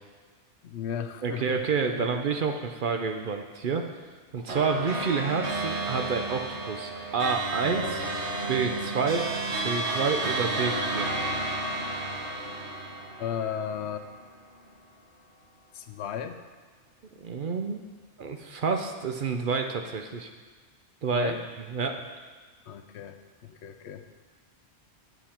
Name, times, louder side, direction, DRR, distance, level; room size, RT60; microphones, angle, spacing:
voice 1, 0.6-1.7 2.0-2.1 13.2-14.1 15.7-16.4 21.1-21.5 22.7-24.1, left 8 dB, 75° left, 8 dB, 0.9 m, -35 dB
voice 2, 1.2-3.8 4.3-8.0 8.5-9.3 9.5-11.1 17.2-17.8 18.2-20.3 21.0-21.3 21.7-22.0, right 5 dB, 55° right, 5 dB, 0.7 m, -29 dB
sound 1, 4.5-14.1, right 2 dB, 75° right, 1.4 m, -32 dB
8.4 x 7.1 x 4.3 m, 1.5 s
omnidirectional pair, 1.2 m